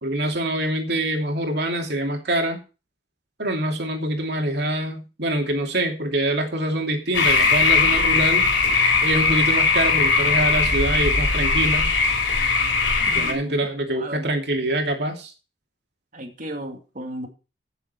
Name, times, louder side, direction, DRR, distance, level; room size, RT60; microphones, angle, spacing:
voice 1, 0.0-2.6 3.4-8.5 9.0-11.9 13.1-15.3, right 1 dB, 60° right, 3 dB, 2.8 m, -25 dB
sound 1, 7.1-13.3, left 4 dB, 80° left, 3.6 m, -19 dB
voice 2, 13.0-14.3 16.1-17.3, right 1 dB, 45° right, 4 dB, 2.4 m, -35 dB
15.0 x 7.2 x 4.5 m, 0.32 s
head